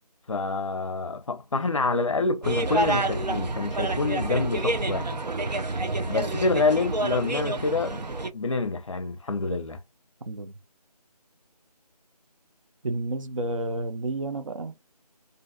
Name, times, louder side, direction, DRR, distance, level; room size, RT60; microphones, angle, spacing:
voice 1, 0.3-5.2 6.0-9.8, left 3 dB, 50° left, 0.5 m, -27 dB
sound 1, 2.4-8.3, right 2 dB, 85° right, 0.7 m, -28 dB
voice 2, 12.8-14.7, right 2 dB, 50° right, 0.5 m, -30 dB
2.5 x 2.2 x 2.4 m
figure-of-eight pair, 165°, 21 cm